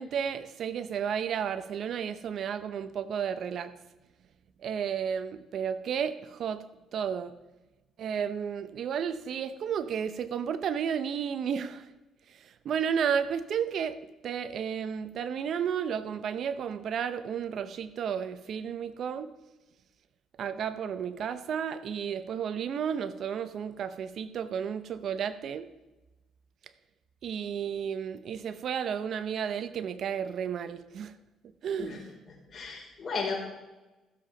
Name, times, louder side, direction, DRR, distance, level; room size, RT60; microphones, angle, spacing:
voice 1, 0.0-3.7 4.6-6.6 6.9-7.4 8.0-11.9 12.4-14.0 14.2-19.3 20.4-25.7 27.2-31.1 31.6-32.0, right 7 dB, 60° right, 13 dB, 0.7 m, -32 dB
voice 2, 32.3-33.4, left 4 dB, 40° left, -2 dB, 5.0 m, -35 dB
15.5 x 7.6 x 5.1 m, 1.1 s
cardioid pair, 90°, 0 cm